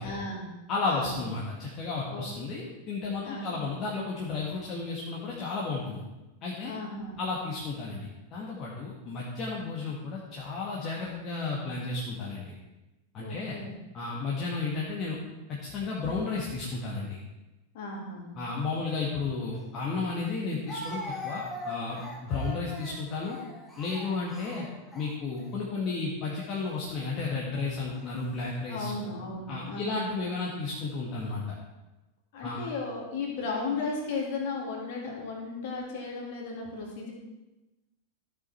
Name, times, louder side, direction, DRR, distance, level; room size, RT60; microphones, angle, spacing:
voice 1, 0.0-0.5 0.8-1.2 2.1-2.3 3.2-3.7 6.6-7.2 13.2-13.7 17.7-18.4 28.7-30.1 32.3-37.1, left 3 dB, 50° left, -2 dB, 3.1 m, -35 dB
voice 2, 0.7-6.0 6.4-6.7 7.2-12.5 13.1-13.6 13.9-15.2 15.5-17.2 18.4-23.4 23.8-24.7 24.9-28.9 29.5-31.4 32.4-32.6, left 3 dB, 35° left, -4 dB, 1.8 m, -33 dB
Speech, 19.5-19.6 20.7-25.6 26.3-26.6 27.5-28.1, left 1 dB, 15° left, 1.8 m, -42 dB
13.5 x 7.0 x 4.5 m, 1.0 s
figure-of-eight pair, 90°, 0 cm